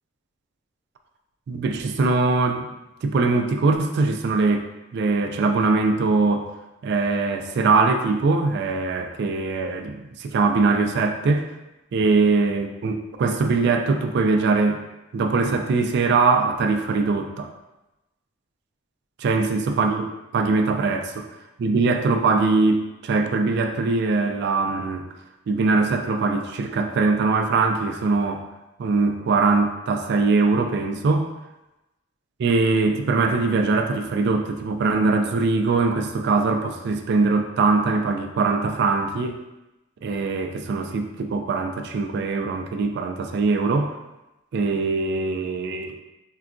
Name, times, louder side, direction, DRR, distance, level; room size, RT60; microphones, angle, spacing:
voice 1, 1.5-2.7 3.0-4.7 4.9-6.5 6.8-11.5 11.9-14.8 15.1-17.5 19.2-20.0 20.3-21.2 21.6-25.0 25.5-28.4 28.8-31.3 32.4-39.4 40.0-43.9 44.5-45.9, right 3 dB, 60° right, 5 dB, 0.3 m, -22 dB
3.7 x 2.2 x 2.4 m, 0.98 s
head